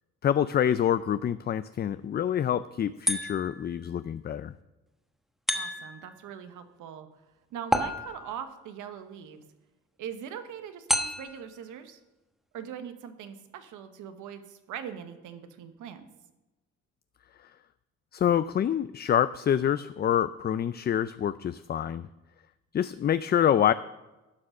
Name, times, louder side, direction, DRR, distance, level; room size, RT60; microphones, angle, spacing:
voice 1, 0.2-4.5 18.1-22.1 22.7-23.7, left 9 dB, 35° left, 14 dB, 0.4 m, -26 dB
sound 1, 3.1-3.7 5.5-6.1 7.7-8.5 10.9-11.5, equal, ahead, 1.1 m, -30 dB
voice 2, 5.5-7.1 7.5-9.4 10.0-12.0 12.5-16.1, right 8 dB, 85° right, 8 dB, 1.2 m, -41 dB
11.5 x 6.4 x 6.4 m, 1.1 s
cardioid pair, 90°, 30 cm